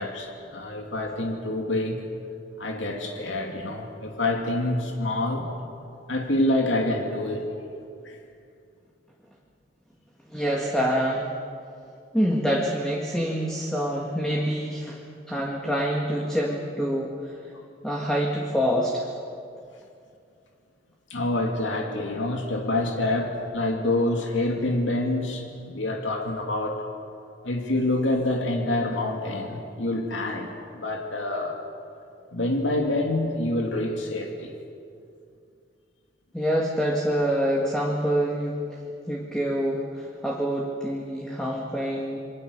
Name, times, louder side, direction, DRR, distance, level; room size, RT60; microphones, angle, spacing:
voice 1, 0.0-2.0 2.6-5.5 6.1-7.5 8.0-8.2 17.5-17.6 21.1-26.8 27.4-30.5 30.7-31.6 32.3-34.5, left 1 dB, 90° left, 2 dB, 2.7 m, -27 dB
voice 2, 10.3-11.3 12.1-15.0 15.3-17.3 17.8-19.1 36.3-38.6 39.1-42.2, equal, 5° left, -2 dB, 1.9 m, -26 dB
28.0 x 22.5 x 6.8 m, 2.5 s
head